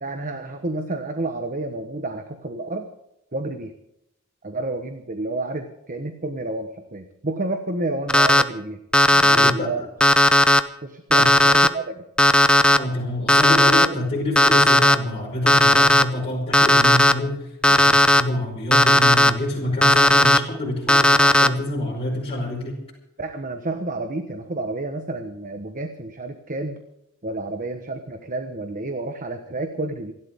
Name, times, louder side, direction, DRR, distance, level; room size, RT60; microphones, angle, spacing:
voice 1, 0.0-2.9 3.3-3.7 4.4-8.8 9.1-9.8 10.8-12.0 23.2-26.8 27.2-30.1, right 2 dB, 40° right, 7 dB, 1.2 m, -30 dB
Alarm, 8.1-8.4 8.9-9.5 10.0-10.6 11.1-11.7 12.2-12.8 13.3-13.9 14.3-14.9 15.5-16.0 16.5-17.1 17.6-18.2 18.7-19.3 19.8-20.4 20.9-21.5, left 1 dB, 5° left, 0.6 m, -15 dB
voice 2, 9.3-9.9 11.2-11.3 12.7-22.8, left 1 dB, 30° left, -5 dB, 5.1 m, -27 dB
27.5 x 12.5 x 3.7 m, 0.84 s
head